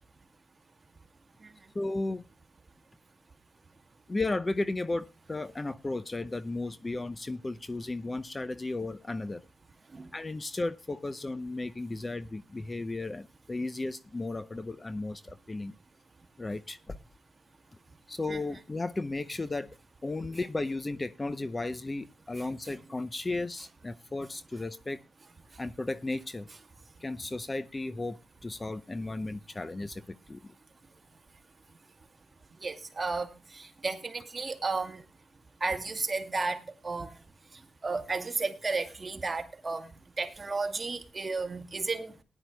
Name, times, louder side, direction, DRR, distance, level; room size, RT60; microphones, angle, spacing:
voice 1, 1.7-2.3 4.1-9.4 10.1-15.7 16.4-17.0 18.1-19.7 20.0-25.0 25.6-26.5 27.0-30.4, left 2 dB, 25° left, 13 dB, 0.7 m, -34 dB
voice 2, 32.6-35.0 35.6-37.2 37.8-39.9 40.2-42.1, right 3 dB, 35° right, 4 dB, 2.2 m, -33 dB
19.0 x 11.0 x 2.2 m, 0.30 s
cardioid pair, 75°, 0 cm